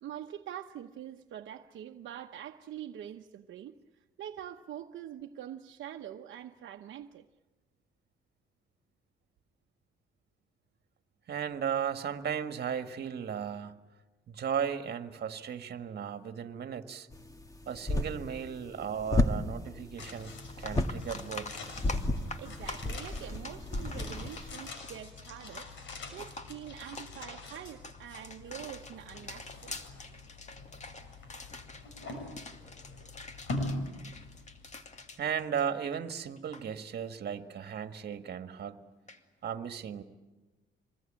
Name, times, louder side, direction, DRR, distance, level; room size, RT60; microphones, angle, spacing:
voice 1, 0.0-7.3 22.4-25.7 26.1-29.8, right 10 dB, 70° right, 1.0 m, -45 dB
voice 2, 11.3-13.8 14.3-17.1 17.7-20.3 20.6-21.6 35.2-38.8 39.4-40.0, right 8 dB, 55° right, 1.7 m, -35 dB
sound 1, 17.1-24.7, left 2 dB, 15° left, 1.8 m, -33 dB
sound 2, 20.0-35.2 35.4-35.5, left 2 dB, 70° left, 6.3 m, -44 dB
sound 3, 20.0-20.1 20.5-36.1 36.4-36.6 39.1-39.2, left 3 dB, 35° left, 2.3 m, -46 dB
26.0 x 20.5 x 8.9 m
cardioid pair, 90°, 20 cm